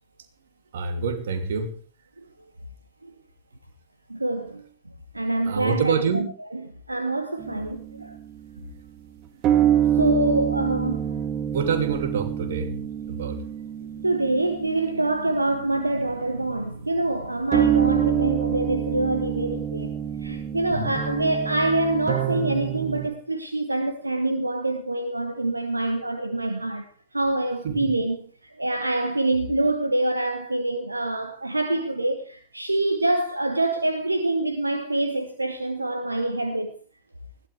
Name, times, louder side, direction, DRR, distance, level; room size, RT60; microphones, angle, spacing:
voice 1, 0.7-1.7 5.4-6.3 11.5-12.7 13.1-13.4 20.7-20.9 27.6-27.9, right 5 dB, 60° right, 2.8 m, -26 dB
voice 2, 4.1-4.6 5.1-8.2 9.9-11.2 14.0-19.9 20.2-36.7, right 2 dB, 85° right, 1.2 m, -26 dB
sound 1, 7.4-8.5 9.4-15.6 17.5-23.1, right 10 dB, 35° right, 2.0 m, -26 dB
20.5 x 16.0 x 3.5 m
figure-of-eight pair, 90°, 0 cm